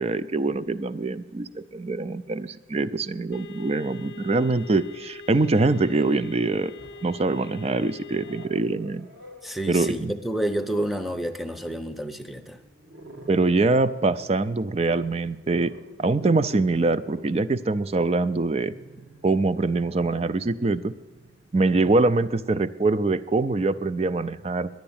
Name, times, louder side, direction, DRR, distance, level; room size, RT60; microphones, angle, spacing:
voice 1, 0.0-6.7 7.0-9.1 9.7-10.1 13.3-15.7 16.0-18.7 19.2-20.9 21.5-24.7, right 3 dB, 35° right, 15 dB, 0.4 m, -24 dB
sound 1, 3.3-8.5, left 4 dB, 80° left, 0.7 m, -43 dB
Growling, 4.1-4.2 5.1-6.2 6.6-7.3 7.7-22.3, right 1 dB, 65° right, 1.9 m, -50 dB
voice 2, 9.4-12.6, right 1 dB, ahead, 9 dB, 0.7 m, -29 dB
11.0 x 9.3 x 8.7 m, 1.2 s
head